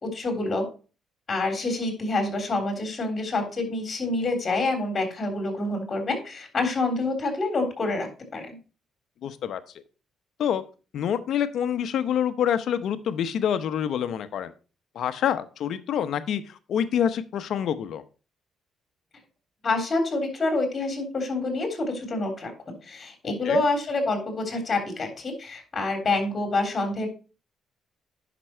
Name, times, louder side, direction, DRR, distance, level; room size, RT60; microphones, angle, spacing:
voice 1, 0.0-0.7 1.3-8.6 19.6-22.5 22.8-27.1, left 2 dB, 35° left, 5 dB, 3.6 m, -27 dB
voice 2, 9.2-9.6 10.4-10.6 10.9-14.5 14.9-18.0 23.3-23.6, left 9 dB, 70° left, 12 dB, 0.8 m, -27 dB
9.9 x 6.0 x 4.4 m, 0.35 s
cardioid pair, 90°, 0 cm